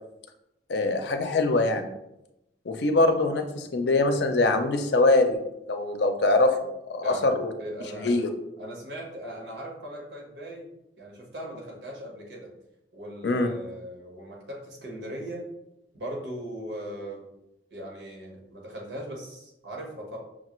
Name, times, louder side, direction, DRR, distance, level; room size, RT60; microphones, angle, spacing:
voice 1, 0.7-1.9 2.6-6.6 6.9-7.5 8.0-8.3 13.2-13.5, left 2 dB, 75° left, 6 dB, 0.5 m, -23 dB
voice 2, 7.6-8.2 8.6-10.7 11.0-12.5 12.9-15.4 15.9-17.3 17.7-20.2, right 1 dB, 80° right, -1 dB, 1.2 m, -39 dB
5.9 x 2.5 x 3.0 m, 0.87 s
head